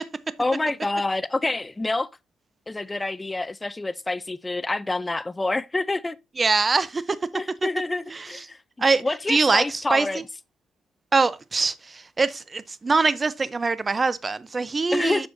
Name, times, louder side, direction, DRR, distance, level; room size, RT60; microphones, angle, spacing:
voice 1, 0.4-2.1 2.7-6.2 7.3-8.6 9.0-10.2 14.9-15.3, left 2 dB, 20° left, 0.4 m, -27 dB
voice 2, 6.4-7.2 8.1-8.5 8.8-9.0 9.3-10.2 11.1-15.3, right 4 dB, 30° right, 0.6 m, -23 dB
7.8 x 6.1 x 2.6 m
cardioid pair, 90°, 0 cm